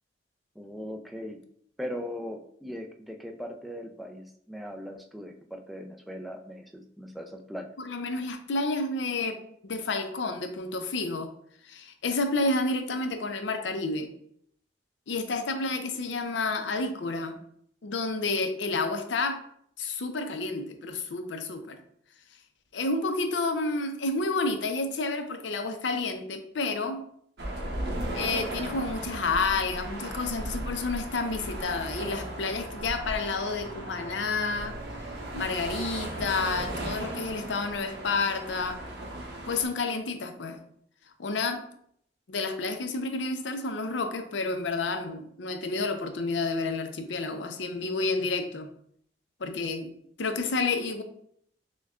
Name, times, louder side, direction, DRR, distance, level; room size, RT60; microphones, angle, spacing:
voice 1, 0.6-1.4 1.8-7.7, equal, ahead, 3 dB, 0.3 m, -39 dB
voice 2, 7.8-11.3 11.6-14.1 15.1-17.4 17.8-19.4 19.8-21.8 22.7-27.0 28.1-34.8 35.3-38.8 39.5-40.6 41.2-41.6 42.3-48.7 49.4-49.9 50.2-51.0, left 3 dB, 85° left, 7 dB, 0.5 m, -30 dB
sound 1, 27.4-39.6, right 1 dB, 65° right, 0.8 m, -36 dB
6.2 x 2.2 x 2.4 m, 0.67 s
head